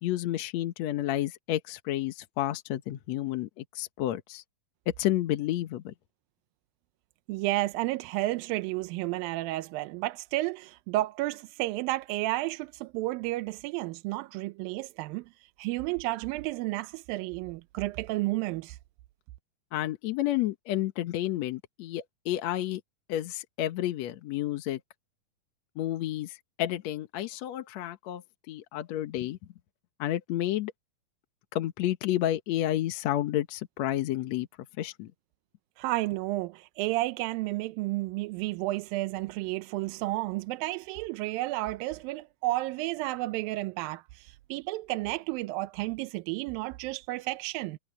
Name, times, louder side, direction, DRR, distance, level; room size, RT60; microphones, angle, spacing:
voice 1, 0.0-4.4 4.9-5.9 19.7-22.8 23.1-24.8 25.8-29.4 30.0-30.7 31.5-34.5 34.8-35.1, left 13 dB, 65° left, 1.8 m, -30 dB
voice 2, 7.3-15.3 15.6-18.8 35.8-47.8, right 18 dB, 85° right, 2.4 m, -32 dB
omnidirectional pair, 4.1 m